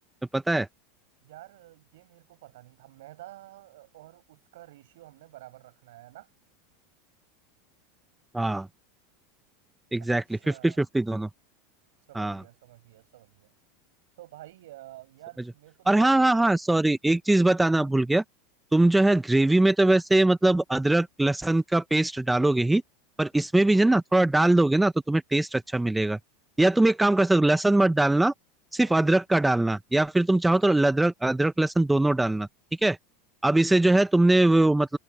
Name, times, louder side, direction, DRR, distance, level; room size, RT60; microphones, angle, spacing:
voice 1, 0.3-0.7 8.3-8.7 9.9-11.3 12.1-12.4 15.9-18.2 18.7-22.8 23.2-26.2 26.6-28.3 28.7-32.5 32.8-33.0 33.4-35.0, right 2 dB, 5° right, 0.9 m, -22 dB
voice 2, 1.2-6.3 10.0-10.8 12.1-13.5 14.2-16.3 28.8-28.9 30.5-30.8 33.6-34.0, right 16 dB, 75° right, 5.3 m, -50 dB
hypercardioid pair, 100°, 0 cm